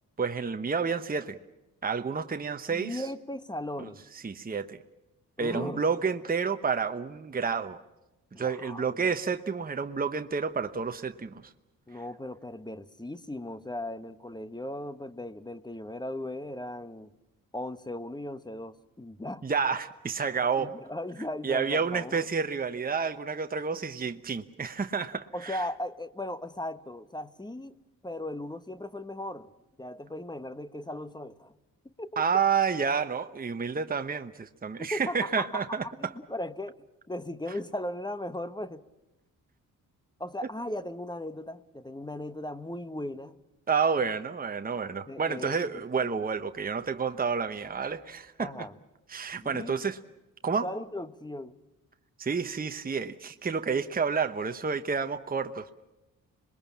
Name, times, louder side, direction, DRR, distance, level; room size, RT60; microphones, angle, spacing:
voice 1, 0.2-1.4 1.8-3.1 3.8-4.8 5.4-7.8 8.4-11.5 19.4-20.7 21.4-25.7 32.2-36.1 43.7-48.7 49.1-50.0 50.4-50.7 52.2-55.7, right 5 dB, 25° right, 7 dB, 1.0 m, -30 dB
voice 2, 2.7-4.0 5.4-5.8 8.3-9.1 11.9-17.1 17.5-19.4 20.6-22.3 25.3-27.7 28.0-29.5 29.8-31.5 32.0-32.2 34.8-38.8 40.2-43.4 45.1-45.5 46.0-46.2 48.4-48.7 49.4-49.8 50.6-51.6, left 1 dB, 10° left, 13 dB, 1.1 m, -37 dB
26.0 x 21.5 x 7.3 m, 1.0 s
cardioid pair, 65°, 35 cm